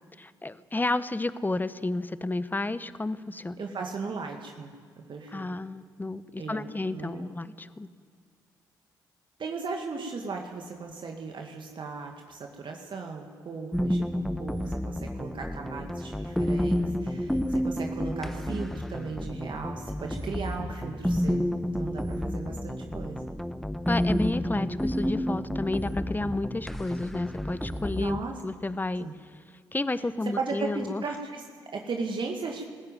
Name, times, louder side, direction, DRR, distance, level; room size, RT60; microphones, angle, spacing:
voice 1, 0.2-3.6 5.3-7.9 23.9-28.2 28.4-29.1 29.5-31.1, left 2 dB, 20° left, 15 dB, 1.0 m, -31 dB
voice 2, 3.6-4.8 5.1-5.6 6.4-6.7 6.9-7.3 9.4-23.2 27.9-28.4 29.0-29.1 30.2-32.7, right 4 dB, 55° right, 2 dB, 2.1 m, -37 dB
sound 1, 13.7-28.2, equal, 5° left, 1.3 m, -30 dB
19.5 x 14.5 x 9.3 m, 2.1 s
hypercardioid pair, 40°, 10 cm